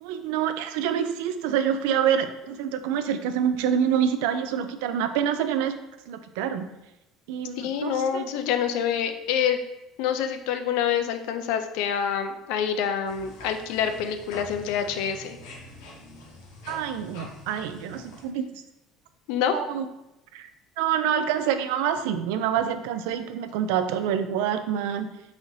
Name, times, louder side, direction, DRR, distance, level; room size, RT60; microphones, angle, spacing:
voice 1, 0.0-5.8 6.1-6.7 7.3-8.3 16.7-18.6 19.5-19.9 20.3-20.5 20.8-25.1, right 8 dB, 90° right, 9 dB, 0.4 m, -26 dB
voice 2, 7.6-9.6 10.0-15.4 19.3-19.5, left 8 dB, 65° left, 8 dB, 0.4 m, -26 dB
sound 1, 13.1-18.2, left 2 dB, 90° left, 1.1 m, -44 dB
4.1 x 2.6 x 4.7 m, 0.93 s
cardioid pair, 175°, 0 cm